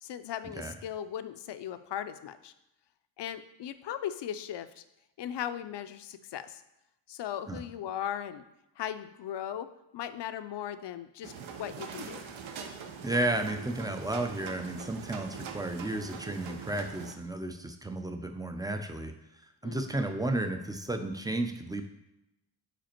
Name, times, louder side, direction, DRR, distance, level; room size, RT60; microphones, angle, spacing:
voice 1, 0.0-2.5 3.2-4.8 5.2-6.6 7.1-8.4 8.8-9.7 9.9-12.2 19.6-20.0, left 10 dB, 65° left, 11 dB, 0.5 m, -38 dB
sound 1, 11.2-17.1, right 6 dB, 90° right, 0.8 m, -43 dB
voice 2, 13.0-19.1 19.6-21.8, right 1 dB, 10° right, 6 dB, 0.3 m, -33 dB
5.1 x 4.9 x 4.4 m, 0.90 s
wide cardioid pair, 140°, 46 cm